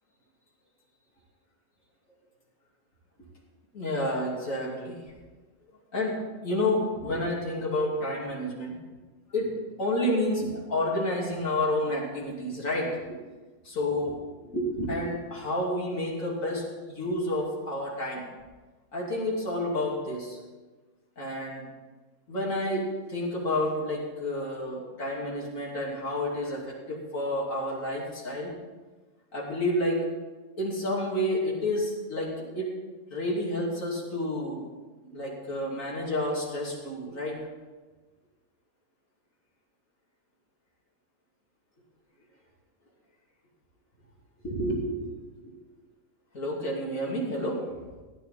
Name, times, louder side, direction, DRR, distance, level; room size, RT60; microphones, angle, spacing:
voice 1, 3.7-5.0 5.9-8.8 9.3-9.5 9.8-13.2 13.6-14.1 14.4-18.3 18.9-20.4 21.2-21.6 22.3-28.5 29.3-30.0 30.6-32.7 33.1-34.6 35.0-37.4 44.4-45.1 46.3-47.6, left 1 dB, 60° left, -4 dB, 3.4 m, -30 dB
16.5 x 9.9 x 4.2 m, 1.3 s
omnidirectional pair, 1.5 m